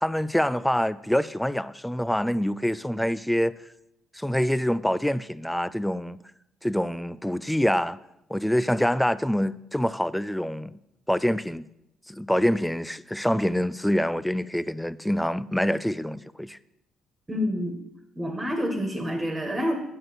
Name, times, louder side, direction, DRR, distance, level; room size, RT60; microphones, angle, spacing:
voice 1, 0.0-3.5 4.1-6.2 6.6-8.0 8.3-10.7 11.1-11.7 12.1-16.6, equal, 5° left, 0.4 m, -25 dB
voice 2, 17.3-17.8 18.2-19.7, equal, 15° right, 1.8 m, -28 dB
9.5 x 7.9 x 6.0 m
cardioid pair, 105°, 0 cm